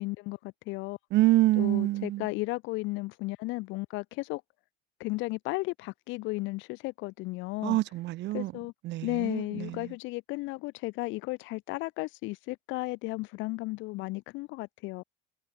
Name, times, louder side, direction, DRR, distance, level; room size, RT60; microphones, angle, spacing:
voice 1, 0.0-1.0 1.6-4.4 5.0-7.8 8.3-8.7 9.0-15.0, left 22 dB, 70° left, 4.2 m, -34 dB
voice 2, 1.1-2.3 7.6-8.5 8.8-9.9, right 17 dB, 60° right, 1.6 m, -26 dB
supercardioid pair, 90°, 21 cm